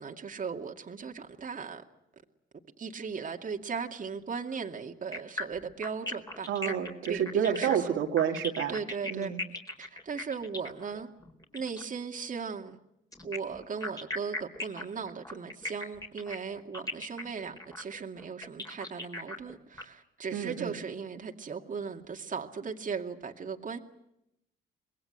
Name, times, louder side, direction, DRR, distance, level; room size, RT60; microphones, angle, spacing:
voice 1, 0.0-1.8 2.8-6.7 7.1-8.0 8.7-11.1 11.5-12.8 13.2-23.8, right 5 dB, 40° right, 2.4 m, -37 dB
sound 1, 5.1-11.9 13.1-19.8, left 1 dB, 20° left, 4.3 m, -38 dB
voice 2, 6.5-8.7 9.1-9.4 20.3-20.8, right 9 dB, 80° right, 2.7 m, -29 dB
25.5 x 21.5 x 8.1 m
cardioid pair, 90°, 20 cm